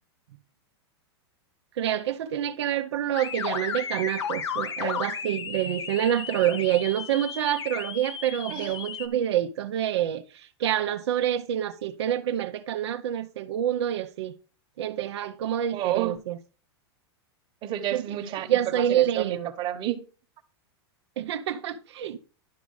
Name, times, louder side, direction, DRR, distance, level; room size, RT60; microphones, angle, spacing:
voice 1, 1.8-14.3 14.8-16.4 17.9-18.0 18.5-19.5 21.2-22.2, right 11 dB, 75° right, 0.8 m, -27 dB
sound 1, 3.1-9.1, left 6 dB, 90° left, 1.5 m, -34 dB
voice 2, 15.7-16.2 17.6-20.0, right 12 dB, 35° right, 1.3 m, -31 dB
11.5 x 5.2 x 4.8 m
hypercardioid pair, 130°, 14 cm